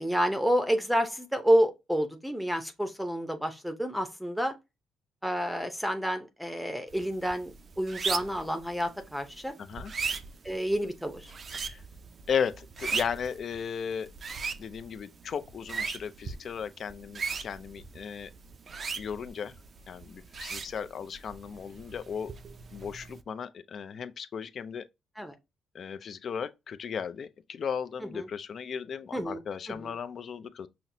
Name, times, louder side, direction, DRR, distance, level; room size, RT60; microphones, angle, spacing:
voice 1, 0.0-4.5 5.2-9.5 10.4-11.3 25.2-25.3 28.1-28.3 29.1-29.4 29.7-29.9, equal, ahead, 0.6 m, -29 dB
sound 1, 6.9-23.2, right 5 dB, 45° right, 0.4 m, -39 dB
voice 2, 9.6-9.9 11.5-11.8 12.3-14.1 14.6-18.3 19.0-19.6 19.9-22.3 22.7-24.9 25.7-30.7, left 7 dB, 55° left, 0.4 m, -36 dB
5.6 x 2.0 x 2.6 m
cardioid pair, 90°, 0 cm